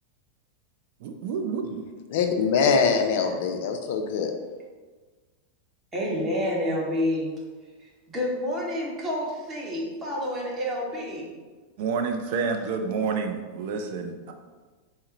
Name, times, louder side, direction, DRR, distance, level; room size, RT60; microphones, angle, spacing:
voice 1, 1.0-1.8 11.8-14.3, right 5 dB, 50° right, 5 dB, 0.4 m, -29 dB
voice 2, 2.1-4.3, left 5 dB, 50° left, 4 dB, 0.4 m, -23 dB
voice 3, 5.9-7.3 7.8-11.3, left 1 dB, 25° right, -3 dB, 0.9 m, -29 dB
3.7 x 2.1 x 3.8 m, 1.4 s
figure-of-eight pair, 90°, 0 cm